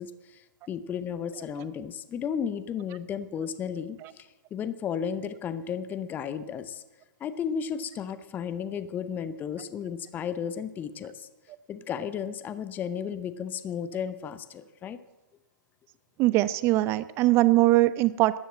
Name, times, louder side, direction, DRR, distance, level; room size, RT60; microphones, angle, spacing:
voice 1, 0.0-6.8 7.2-11.3 11.7-15.0, left 7 dB, 15° left, 13 dB, 0.7 m, -34 dB
voice 2, 16.2-18.4, right 17 dB, 25° right, 16 dB, 0.4 m, -21 dB
13.5 x 10.0 x 7.7 m, 1.1 s
figure-of-eight pair, 125°, 11 cm